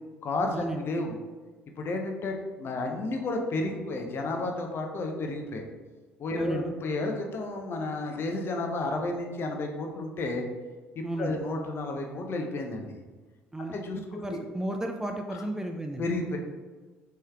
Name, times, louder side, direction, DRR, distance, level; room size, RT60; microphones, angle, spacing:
voice 1, 0.2-1.2 1.8-5.6 6.2-10.5 11.0-13.0 13.7-14.4 15.3-15.4 16.0-16.4, left 2 dB, 40° left, 2 dB, 0.6 m, -32 dB
voice 2, 6.3-6.7 11.0-11.4 13.5-16.1, right 1 dB, 10° right, 4 dB, 0.3 m, -34 dB
4.5 x 3.1 x 2.3 m, 1.3 s
figure-of-eight pair, 55°, 6 cm